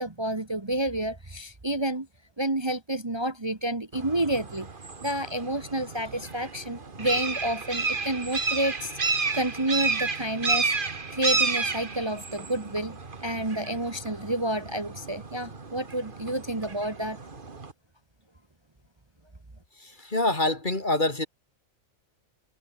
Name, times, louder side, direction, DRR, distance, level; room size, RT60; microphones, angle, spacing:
voice 1, 0.0-2.1 2.4-4.7 5.0-10.7 11.1-17.2, right 1 dB, 20° right, 1.6 m, -30 dB
sound 1, 3.9-17.7, right 4 dB, 40° right, 1.9 m, -31 dB
voice 2, 19.8-21.3, left 2 dB, 35° left, 3.3 m, -26 dB
omnidirectional pair, 1.4 m